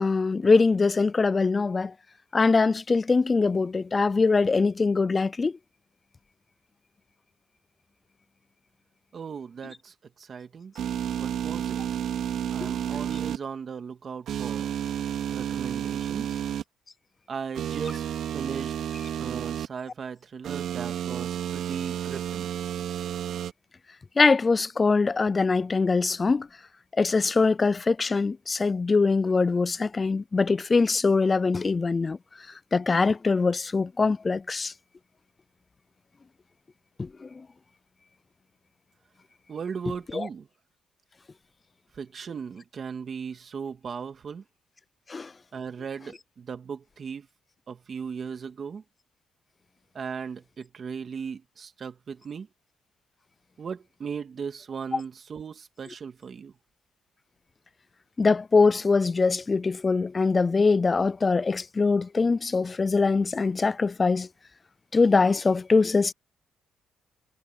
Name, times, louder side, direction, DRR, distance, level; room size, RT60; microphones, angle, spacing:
voice 1, 0.0-1.9 2.3-5.5 24.2-26.5 27.0-32.2 32.7-34.7 37.0-37.3 40.1-40.3 45.1-45.3 58.2-64.3 64.9-66.1, left 4 dB, 30° left, 0.3 m, -23 dB
voice 2, 9.1-10.7 11.1-11.8 12.5-14.7 15.3-16.4 17.3-18.0 18.3-18.8 19.2-22.5 39.5-40.5 41.9-44.4 45.5-47.3 47.7-48.8 49.9-52.5 53.6-56.5, right 6 dB, 45° right, 1.9 m, -37 dB
sound 1, 10.8-13.4 14.3-16.6 17.5-19.7 20.4-23.5, right 10 dB, 70° right, 4.1 m, -31 dB
cardioid pair, 90°, 0 cm